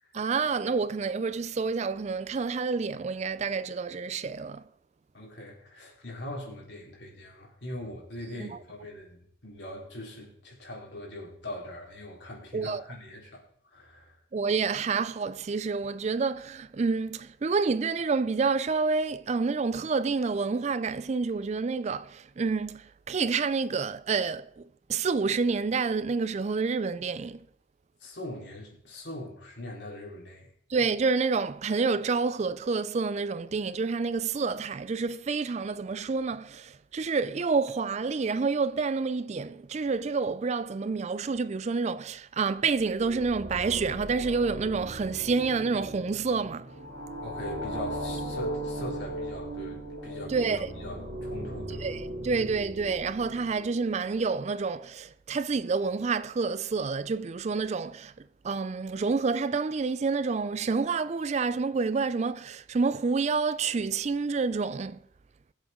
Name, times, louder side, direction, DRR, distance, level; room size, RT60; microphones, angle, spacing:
voice 1, 0.1-4.6 8.4-8.6 12.5-12.8 14.3-27.5 30.7-46.7 50.3-50.7 51.8-58.1 58.4-65.0, right 4 dB, 35° right, 0.4 m, -28 dB
voice 2, 5.1-14.2 28.0-30.5 47.2-50.5 50.7-51.9, left 1 dB, 65° left, 3.9 m, -41 dB
sound 1, 42.7-53.9, right 1 dB, 60° right, 3.5 m, -38 dB
20.5 x 7.9 x 3.7 m
head